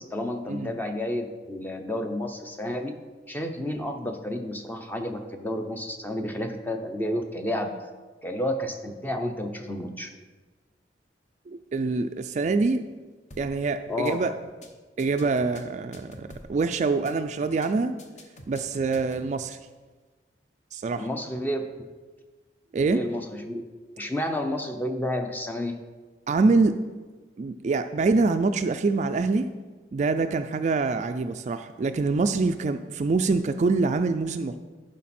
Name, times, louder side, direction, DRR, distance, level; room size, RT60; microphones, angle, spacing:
voice 1, 0.0-3.0 3.3-7.8 8.2-10.1 13.9-14.2 20.9-21.6 22.9-23.7 24.0-25.8, left 1 dB, 10° left, 5 dB, 0.6 m, -31 dB
voice 2, 11.5-12.8 13.4-14.3 15.0-17.9 18.5-19.6 20.7-21.1 22.7-23.0 26.3-26.7 27.4-29.5 29.9-34.6, right 3 dB, 40° right, 9 dB, 0.3 m, -25 dB
sound 1, 13.3-13.6 13.9-14.1 14.4-14.7 15.0-16.6 16.9-17.1 17.4-17.7 18.0-19.3, equal, 40° left, 0.9 m, -46 dB
11.0 x 5.2 x 4.3 m, 1.3 s
head